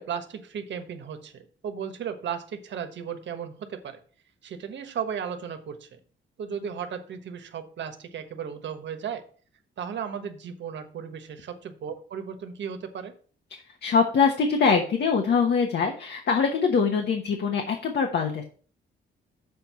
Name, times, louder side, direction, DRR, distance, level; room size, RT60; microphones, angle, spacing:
voice 1, 0.0-4.0 4.4-6.0 6.4-9.2 9.8-13.1, right 7 dB, 65° right, 8 dB, 1.3 m, -35 dB
voice 2, 13.5-18.4, left 5 dB, 60° left, 3 dB, 1.2 m, -23 dB
6.9 x 4.6 x 6.8 m, 0.43 s
cardioid pair, 135°, 20 cm